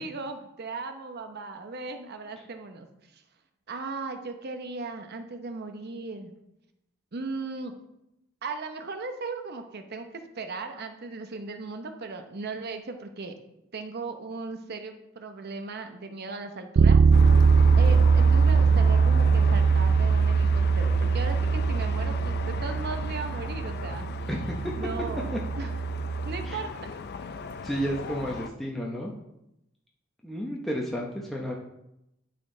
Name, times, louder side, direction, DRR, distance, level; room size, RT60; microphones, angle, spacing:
voice 1, 0.0-2.9 3.1-3.2 3.7-6.3 7.1-7.8 8.4-13.4 13.7-17.0 17.7-24.2 24.6-25.7 26.2-26.7, right 3 dB, 50° right, 6 dB, 0.8 m, -37 dB
Bass guitar, 16.8-26.6, right 5 dB, 75° right, 0.4 m, -22 dB
sound 1, 17.1-28.5, left 4 dB, 50° left, 0.5 m, -36 dB
voice 2, 27.6-29.1 30.2-31.5, equal, ahead, -3 dB, 0.8 m, -31 dB
12.0 x 4.4 x 3.8 m, 0.86 s
head